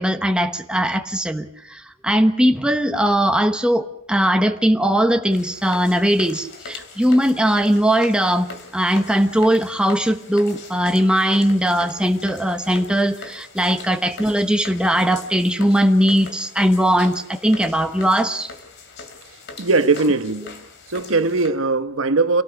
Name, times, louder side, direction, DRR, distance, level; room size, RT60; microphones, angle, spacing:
voice 1, 0.0-18.5, equal, 5° right, 1.0 m, -19 dB
sound 1, 5.3-21.5, left 4 dB, 60° left, 2.8 m, -40 dB
voice 2, 19.6-20.6 20.9-22.4, right 3 dB, 75° right, 1.2 m, -19 dB
27.5 x 18.0 x 5.9 m
head